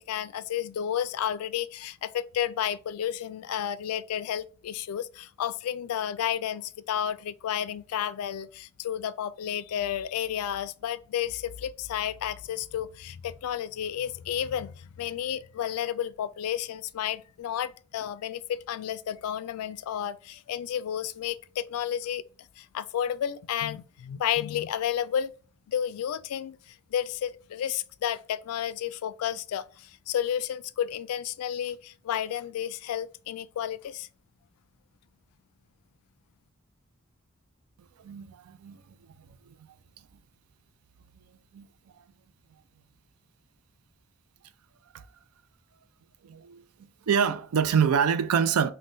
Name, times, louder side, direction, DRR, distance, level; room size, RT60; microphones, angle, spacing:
voice 1, 0.0-22.2 22.6-25.3 25.7-34.1, left 10 dB, 85° left, 0.3 m, -32 dB
voice 2, 38.0-38.9 39.5-39.6 41.5-41.7 44.9-45.0 46.2-46.6 47.1-48.7, right 7 dB, 80° right, 0.4 m, -26 dB
5.4 x 2.2 x 2.6 m
head